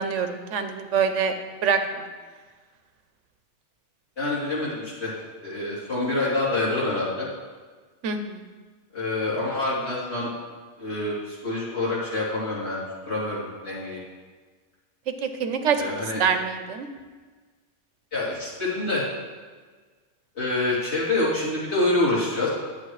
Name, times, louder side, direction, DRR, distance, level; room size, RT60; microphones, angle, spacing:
voice 1, 0.0-1.3 1.6-2.0 8.0-8.4 15.2-15.9 16.2-16.9, right 6 dB, 85° right, 8 dB, 1.1 m, -25 dB
voice 2, 4.2-5.1 5.4-7.3 8.9-10.3 10.8-12.8 13.1-14.0 15.8-16.2 18.1-19.0 20.3-22.5, left 2 dB, 65° left, -8 dB, 3.4 m, -26 dB
11.0 x 8.3 x 3.2 m, 1.4 s
omnidirectional pair, 1.2 m